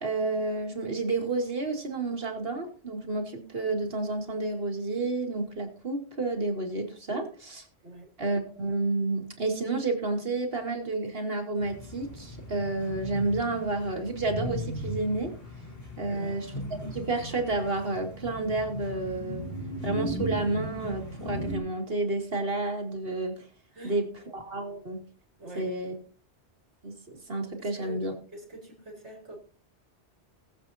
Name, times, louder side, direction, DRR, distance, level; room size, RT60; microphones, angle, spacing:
voice 1, 0.0-7.2 7.5-7.6 8.2-15.3 16.0-16.5 16.9-19.4 19.8-23.4 23.8-24.1 24.3-25.0 25.6-25.9 26.8-28.1, right 2 dB, 60° right, 2.5 m, -30 dB
sound 1, 11.6-21.6, equal, 55° left, 4.1 m, -37 dB
voice 2, 16.0-16.4 23.7-24.0 25.4-25.7 27.6-29.4, right 1 dB, 85° right, 4.0 m, -44 dB
20.5 x 7.8 x 2.8 m
omnidirectional pair, 1.1 m